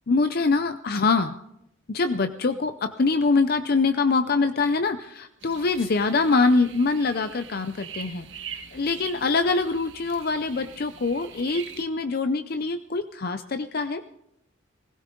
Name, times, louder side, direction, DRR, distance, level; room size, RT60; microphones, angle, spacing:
voice 1, 0.1-1.3 1.9-14.0, left 3 dB, 50° left, 9 dB, 0.5 m, -24 dB
sound 1, 5.4-11.8, right 7 dB, 65° right, 1.4 m, -43 dB
20.0 x 16.0 x 3.8 m, 0.80 s
head